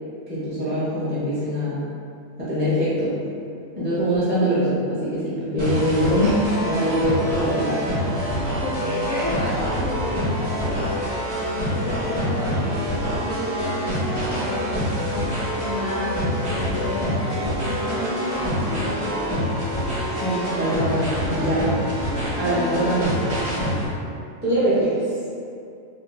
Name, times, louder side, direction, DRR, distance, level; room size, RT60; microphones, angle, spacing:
voice 1, 0.3-1.8 2.4-3.2 3.7-7.9 20.2-23.2 24.4-25.0, equal, 10° right, -11 dB, 0.6 m, -23 dB
sound 1, 5.6-23.9, equal, 85° right, 1.5 m, -26 dB
voice 2, 8.6-11.0 11.8-19.2, left 1 dB, 55° left, -9 dB, 1.3 m, -31 dB
4.0 x 2.6 x 2.3 m, 2.4 s
omnidirectional pair, 1.6 m